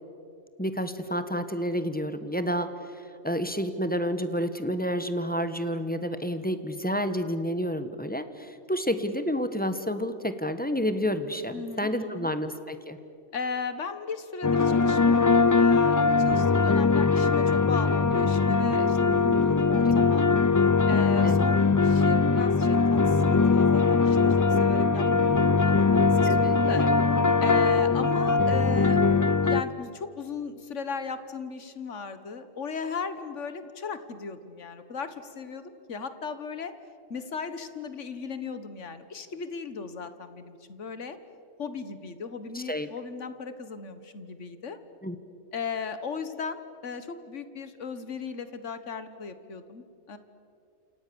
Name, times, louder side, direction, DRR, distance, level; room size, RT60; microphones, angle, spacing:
voice 1, 0.6-2.7 3.2-13.0 21.2-21.4 26.3-26.6 42.5-42.9 45.0-45.1, equal, 5° left, 10 dB, 1.3 m, -29 dB
voice 2, 11.5-12.3 13.3-20.3 20.9-26.9 27.4-36.7 37.1-41.2 41.6-44.8 45.5-50.2, left 5 dB, 70° left, 11 dB, 1.7 m, -37 dB
sound 1, 14.4-29.6, left 4 dB, 25° left, 0.4 m, -21 dB
29.0 x 28.0 x 7.1 m, 2.5 s
omnidirectional pair, 1.3 m